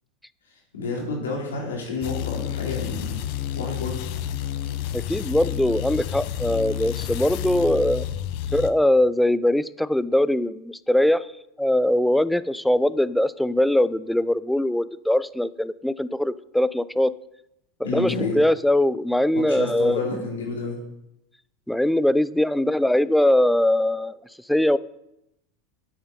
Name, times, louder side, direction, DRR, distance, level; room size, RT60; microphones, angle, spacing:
voice 1, 0.7-3.2 3.5-4.0 17.8-18.4 19.3-20.8, left 3 dB, 80° left, -1 dB, 3.7 m, -29 dB
sound 1, 2.0-8.7, left 11 dB, 60° left, 0.7 m, -30 dB
voice 2, 4.9-8.0 8.5-11.3 11.6-17.1 17.8-20.0 21.7-24.2 24.5-24.8, left 1 dB, 5° left, 17 dB, 0.5 m, -21 dB
10.5 x 8.6 x 5.4 m, 0.84 s
hypercardioid pair, 85°, 0 cm